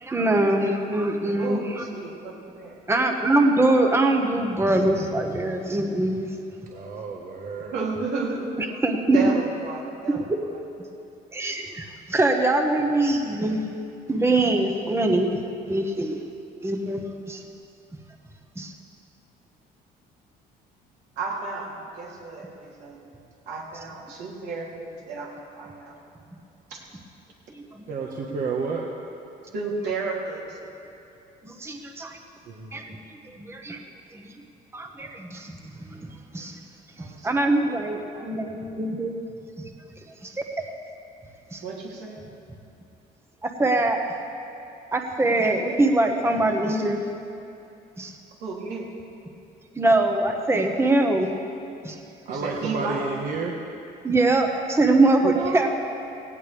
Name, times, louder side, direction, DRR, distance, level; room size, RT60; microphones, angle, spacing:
voice 1, 0.0-1.6 2.9-6.3 8.6-9.4 10.3-10.4 11.3-13.6 14.1-15.3 15.7-16.2 16.6-17.0 17.3-17.4 18.6-18.7 27.5-27.8 31.4-32.2 32.7-33.0 33.4-33.8 34.1-34.2 34.7-35.6 35.9-36.1 36.3-36.6 37.2-39.1 40.2-40.4 41.5-41.6 43.4-44.0 44.9-47.0 48.0-48.1 49.8-51.3 51.8-51.9 54.0-55.7, right 2 dB, 15° right, 3 dB, 1.1 m, -23 dB
voice 2, 1.3-2.8 7.6-8.5 9.1-10.3 10.5-10.6 21.2-23.0 23.5-25.9 26.7-26.8 29.5-30.6 37.0-38.3 41.6-42.3 48.4-48.9 52.3-53.1 55.3-55.7, right 4 dB, 85° right, -3 dB, 3.2 m, -33 dB
voice 3, 6.7-7.7 27.9-28.8 32.5-32.7 52.2-53.6 55.2-55.3, right 4 dB, 55° right, -1 dB, 1.5 m, -30 dB
17.5 x 17.5 x 3.5 m, 2.6 s
cardioid pair, 110°, 17 cm